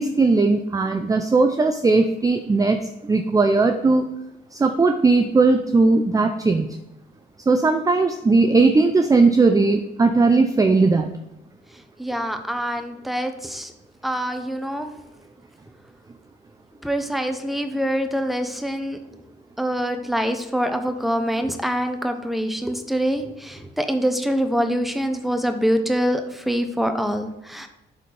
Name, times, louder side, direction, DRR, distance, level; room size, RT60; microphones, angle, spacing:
voice 1, 0.0-4.1 4.5-6.7 7.5-11.1, right 3 dB, 15° right, 6 dB, 0.5 m, -18 dB
voice 2, 12.0-13.7 14.0-14.9 16.8-19.1 19.6-27.7, equal, ahead, 7 dB, 0.9 m, -25 dB
12.0 x 4.1 x 3.4 m, 0.92 s
cardioid pair, 90°, 20 cm